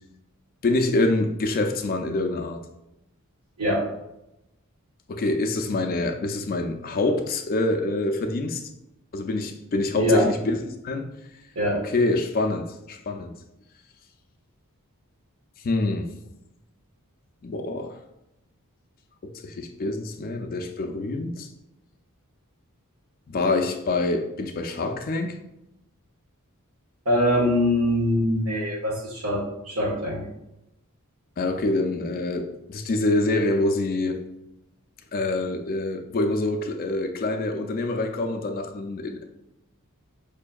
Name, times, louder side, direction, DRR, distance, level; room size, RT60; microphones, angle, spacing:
voice 1, 0.6-2.6 5.1-8.6 9.1-11.1 11.7-13.3 15.6-16.1 17.4-18.0 19.2-21.5 23.3-25.4 31.4-34.2 35.1-39.2, left 2 dB, 40° left, 5 dB, 0.4 m, -26 dB
voice 2, 9.9-10.3 11.5-11.8 27.0-30.3, equal, 75° right, -2 dB, 1.3 m, -23 dB
4.9 x 2.7 x 2.3 m, 0.88 s
head